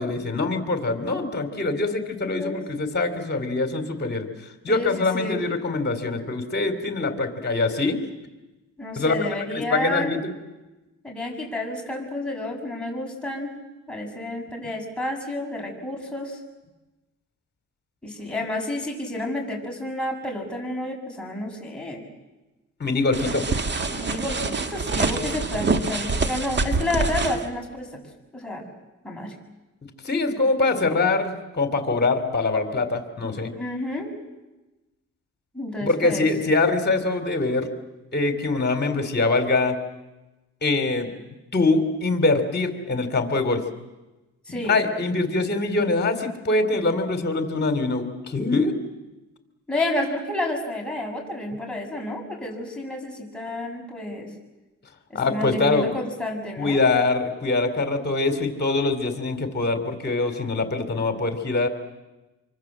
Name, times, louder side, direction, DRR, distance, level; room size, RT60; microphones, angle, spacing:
voice 1, 0.0-4.3 4.6-8.0 9.0-9.2 9.7-10.3 22.8-23.5 30.0-33.5 35.8-37.7 38.1-39.8 40.6-41.1 41.5-43.6 44.5-48.7 55.1-55.9 56.6-61.7, left 3 dB, 35° left, 7 dB, 3.7 m, -23 dB
voice 2, 4.7-5.4 8.8-10.2 11.0-13.5 13.9-16.4 18.0-22.0 23.9-27.9 28.3-28.7 29.0-29.3 33.6-34.1 35.5-36.3 44.5-44.8 49.7-54.3 55.1-56.8, left 1 dB, 5° left, -1 dB, 7.0 m, -30 dB
sound 1, 23.1-27.5, right 3 dB, 35° right, 2.0 m, -26 dB
26.0 x 25.0 x 7.6 m, 1.1 s
cardioid pair, 90°, 30 cm